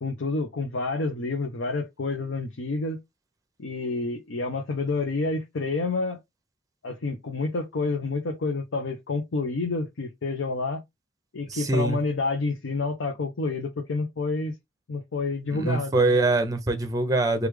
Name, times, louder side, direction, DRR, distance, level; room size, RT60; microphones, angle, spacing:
voice 1, 0.0-3.0 3.6-6.2 6.8-10.8 11.3-14.5 14.9-16.1, left 3 dB, 85° left, 0.6 m, -29 dB
voice 2, 11.5-12.0 15.5-17.5, right 2 dB, 20° right, 0.6 m, -23 dB
3.2 x 2.4 x 3.3 m
head